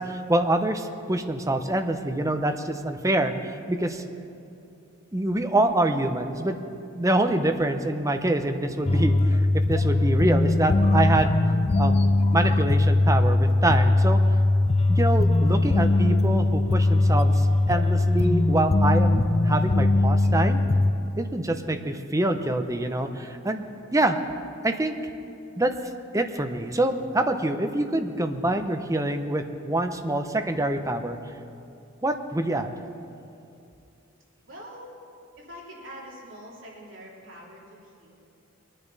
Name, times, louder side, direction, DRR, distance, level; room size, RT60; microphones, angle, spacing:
voice 1, 0.0-4.0 5.1-6.6 6.9-11.4 11.8-14.2 14.9-20.6 21.2-23.6 23.9-24.2 24.6-24.9 25.6-25.7 26.1-31.2 32.0-32.7, right 1 dB, 15° right, 7 dB, 0.7 m, -25 dB
sound 1, 8.9-20.9, left 2 dB, 30° left, 0.4 m, -21 dB
voice 2, 34.4-34.9 35.4-38.1, equal, 70° right, -4 dB, 3.1 m, -44 dB
22.5 x 10.0 x 4.1 m, 2.6 s
head